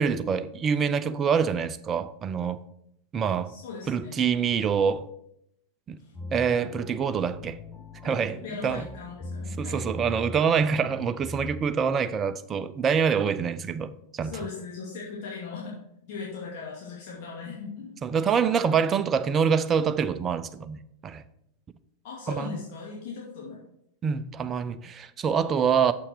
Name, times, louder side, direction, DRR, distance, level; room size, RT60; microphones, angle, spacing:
voice 1, 0.0-2.6 3.1-3.5 3.9-5.1 5.9-6.0 6.3-7.6 8.0-8.4 8.6-8.9 9.6-14.4 18.0-21.2 22.3-22.6 24.0-25.9, right 6 dB, 25° right, 0.5 m, -26 dB
voice 2, 3.5-4.2 6.0-6.1 8.0-9.8 14.2-15.7 16.1-17.9 18.2-18.6 22.0-23.6 25.2-25.3, left 5 dB, 50° left, 2.4 m, -39 dB
sound 1, 6.1-11.6, left 1 dB, 5° left, 1.1 m, -40 dB
7.0 x 5.7 x 6.3 m
figure-of-eight pair, 90°, 0 cm